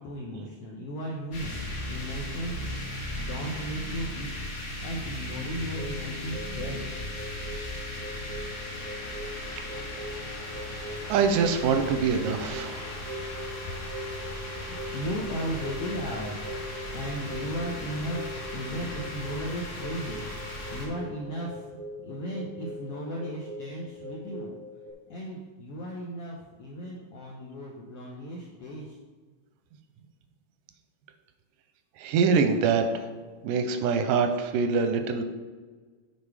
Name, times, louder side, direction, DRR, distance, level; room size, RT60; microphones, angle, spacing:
voice 1, 0.0-2.8 3.2-4.3 4.8-6.9 14.9-16.4 16.9-20.2 20.7-21.7 22.0-24.5 25.1-28.9, equal, 80° left, -2 dB, 1.4 m, -36 dB
sound 1, 1.3-20.9, left 1 dB, 50° left, 2.6 m, -37 dB
sound 2, 5.8-24.9, equal, 60° right, 1.0 m, -41 dB
voice 2, 11.1-12.9 32.0-32.9 33.4-35.2, right 5 dB, 90° right, 7 dB, 2.2 m, -24 dB
8.7 x 4.2 x 4.8 m, 1.4 s
omnidirectional pair, 3.8 m